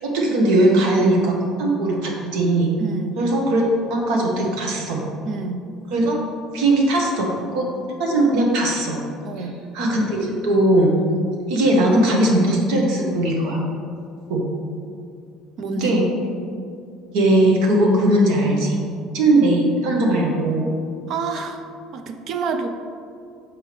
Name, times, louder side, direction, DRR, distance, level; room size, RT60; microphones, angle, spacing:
voice 1, 0.0-2.7 3.2-5.0 5.9-6.2 6.5-7.7 8.0-9.0 9.7-10.9 11.5-13.6 14.3-14.4 15.7-16.1 17.1-18.8 19.1-20.7, right 1 dB, 75° right, -1 dB, 1.1 m, -19 dB
voice 2, 2.8-3.2 5.2-5.6 9.2-9.6 15.6-15.9 21.1-22.7, right 4 dB, 45° right, 7 dB, 0.5 m, -28 dB
6.6 x 4.5 x 3.3 m, 2.4 s
cardioid pair, 165°, 0 cm